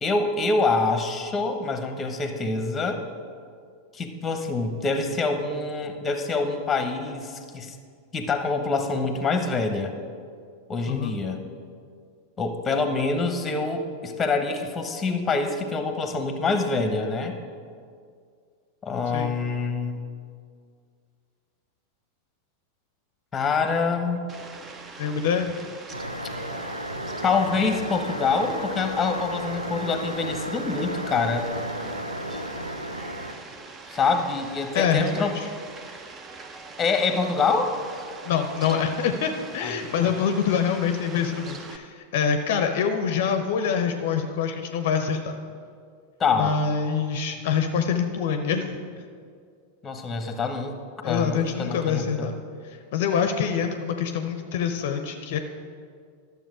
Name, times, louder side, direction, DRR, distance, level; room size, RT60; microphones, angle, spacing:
voice 1, 0.0-3.0 3.9-7.7 8.1-9.9 10.7-11.4 12.4-17.4 18.8-20.1 23.3-24.3 27.2-31.5 33.9-35.3 36.8-37.8 39.6-39.7 46.2-46.6 49.8-52.3, left 4 dB, 15° left, 7 dB, 1.0 m, -26 dB
Fowl, 24.3-41.8, right 3 dB, 25° right, 0.7 m, -43 dB
voice 2, 25.0-25.5 34.7-35.5 38.2-45.4 46.3-49.0 51.0-52.4 52.6-55.4, left 7 dB, 50° left, 7 dB, 0.6 m, -25 dB
sound 1, 25.9-33.3, right 1 dB, 85° right, 0.6 m, -33 dB
12.5 x 6.9 x 4.9 m, 2.2 s
figure-of-eight pair, 90°, 0 cm